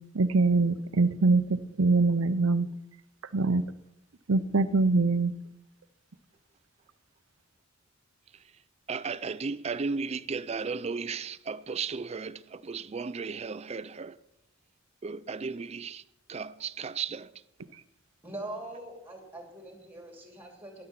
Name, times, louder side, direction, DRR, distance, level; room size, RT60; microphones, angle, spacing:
voice 1, 0.1-2.7 3.3-3.6 4.3-5.3, right 3 dB, 80° right, 0.7 m, -23 dB
voice 2, 8.9-14.2 15.0-16.0 16.3-17.3, right 5 dB, 30° right, 0.4 m, -35 dB
voice 3, 18.2-20.8, right 1 dB, 10° right, 2.6 m, -42 dB
12.5 x 10.5 x 5.8 m
head